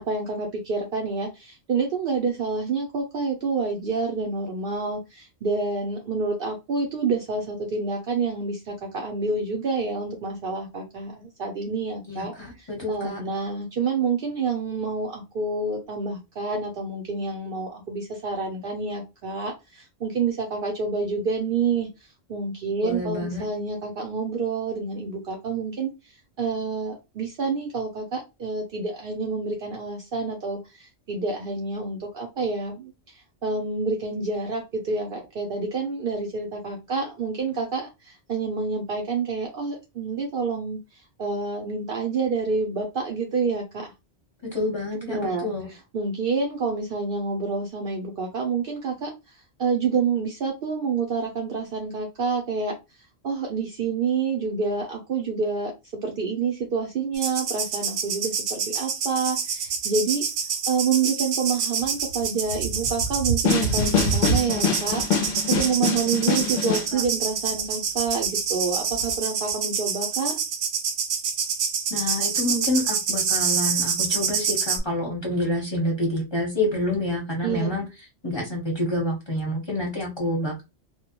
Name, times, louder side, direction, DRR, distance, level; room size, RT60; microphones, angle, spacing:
voice 1, 0.0-12.3 12.9-21.9 22.3-25.9 26.4-32.9 33.4-40.8 41.2-43.9 45.0-45.5 45.9-49.1 49.6-52.7 53.2-55.7 56.0-60.2 60.7-65.0 65.5-70.4 77.4-77.7, right 4 dB, 60° right, 2 dB, 0.6 m, -28 dB
voice 2, 12.1-13.2 22.8-23.5 44.5-45.7 66.5-67.0 71.9-77.8 78.2-80.6, left 1 dB, 25° left, -2 dB, 0.8 m, -28 dB
sound 1, 57.1-74.8, right 6 dB, 85° right, 1.0 m, -27 dB
sound 2, 63.4-66.9, left 6 dB, 60° left, 0.6 m, -25 dB
2.2 x 2.1 x 2.8 m, 0.25 s
omnidirectional pair, 1.2 m